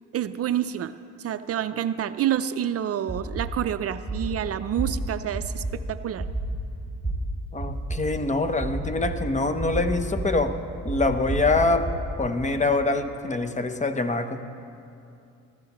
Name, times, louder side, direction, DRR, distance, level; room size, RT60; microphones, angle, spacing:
voice 1, 0.1-6.3, right 10 dB, 50° right, 12 dB, 0.4 m, -28 dB
sound 1, 3.1-3.5 4.1-4.3 4.8-4.9 5.3-5.7 6.2-6.6 7.0-7.1 7.6-8.0 8.6-9.1 9.6-10.2 10.9-11.9, right 3 dB, ahead, 3.1 m, -29 dB
voice 2, 7.5-10.6 10.8-11.9 12.2-14.4, left 3 dB, 25° left, 9 dB, 0.8 m, -24 dB
21.5 x 13.5 x 3.0 m, 2.5 s
cardioid pair, 90°, 30 cm